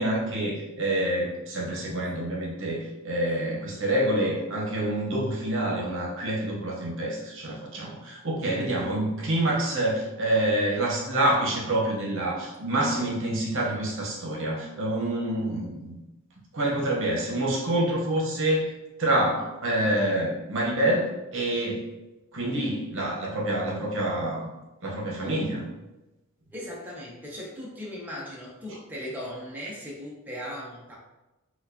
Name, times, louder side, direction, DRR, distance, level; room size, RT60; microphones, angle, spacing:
voice 1, 0.0-16.0 16.5-18.7 19.0-21.8 22.3-24.5 24.8-25.7, right 1 dB, 65° right, -2 dB, 0.9 m, -27 dB
voice 2, 26.5-31.0, equal, 10° right, -5 dB, 0.6 m, -38 dB
4.4 x 2.3 x 2.7 m, 1.0 s
head